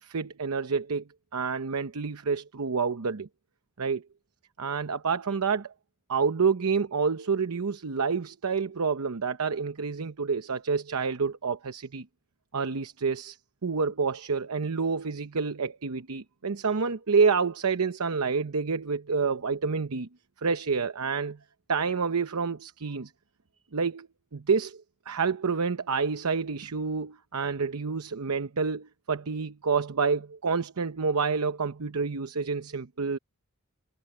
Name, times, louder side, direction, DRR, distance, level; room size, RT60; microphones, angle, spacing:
voice 1, 0.0-1.0 1.3-3.3 3.8-4.0 4.6-5.7 6.1-12.1 12.5-13.4 13.6-20.1 20.4-21.4 21.7-23.1 23.7-24.1 24.3-33.2, right 5 dB, 80° right, 0.8 m, -28 dB
head